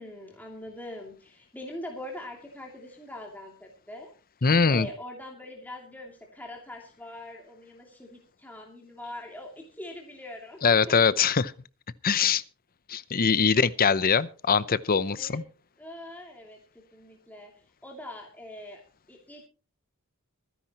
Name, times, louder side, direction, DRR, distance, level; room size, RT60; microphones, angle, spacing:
voice 1, 0.0-4.1 4.4-11.1 15.1-15.4 15.8-17.5 17.8-18.8 19.1-19.5, left 1 dB, 10° left, 2.7 m, -43 dB
voice 2, 4.4-4.9 10.6-11.5 12.0-12.4 12.9-15.4, left 5 dB, 40° left, 0.7 m, -22 dB
25.5 x 10.0 x 3.0 m
head